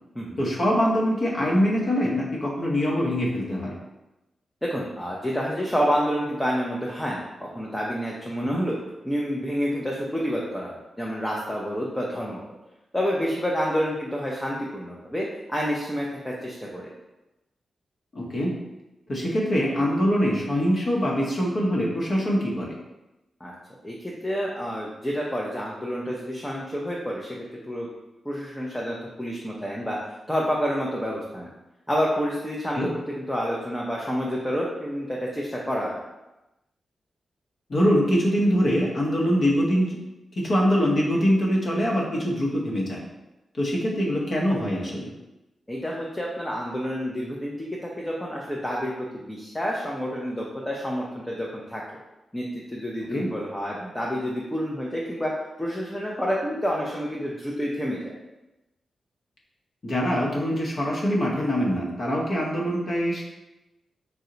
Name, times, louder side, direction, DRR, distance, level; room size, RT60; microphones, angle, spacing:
voice 1, 0.4-3.7 8.4-8.6 18.1-18.5 19.1-22.8 32.7-32.9 37.7-40.0 40.4-43.0 43.6-45.1 53.1-53.3 59.8-63.2, equal, 50° left, -3 dB, 0.7 m, -23 dB
voice 2, 4.6-8.8 9.0-12.4 12.9-16.9 23.4-23.5 23.8-27.9 28.2-30.0 30.3-31.5 31.9-35.9 45.7-51.8 52.3-55.3 55.6-58.1, equal, 10° left, -3 dB, 0.4 m, -29 dB
2.7 x 2.1 x 3.7 m, 0.98 s
cardioid pair, 90°, 0 cm